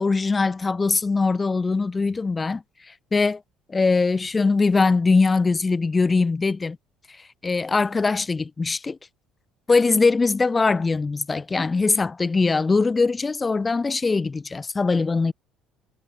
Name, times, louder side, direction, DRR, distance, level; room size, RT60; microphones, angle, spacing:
voice 1, 0.0-2.6 3.1-3.4 3.7-6.8 7.4-9.0 9.7-15.3, left 4 dB, 15° left, 3.8 m, -21 dB
cardioid pair, 170°, 0 cm